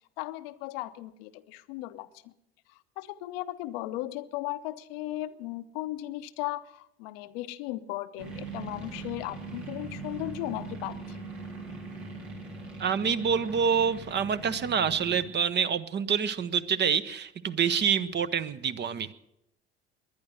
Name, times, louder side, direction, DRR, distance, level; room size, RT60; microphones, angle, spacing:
voice 1, 0.2-2.3 2.7-11.2, left 16 dB, 60° left, 11 dB, 0.8 m, -36 dB
sound 1, 8.2-15.3, right 3 dB, 80° right, 3.7 m, -41 dB
voice 2, 12.8-19.1, right 7 dB, 35° right, 13 dB, 0.8 m, -27 dB
20.0 x 11.0 x 6.3 m, 0.82 s
figure-of-eight pair, 65°, 32 cm